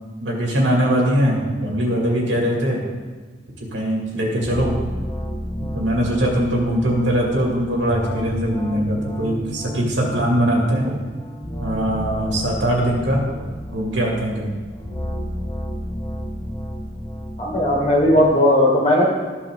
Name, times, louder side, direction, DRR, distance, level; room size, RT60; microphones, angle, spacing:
voice 1, 0.2-2.8 3.7-4.7 5.7-11.1 11.6-13.2 13.7-14.5, right 1 dB, 80° right, -2 dB, 2.4 m, -21 dB
sound 1, 4.4-18.3, equal, 15° left, 0.9 m, -31 dB
voice 2, 17.4-19.1, left 1 dB, 35° left, -3 dB, 2.3 m, -16 dB
13.5 x 5.6 x 3.7 m, 1.4 s
head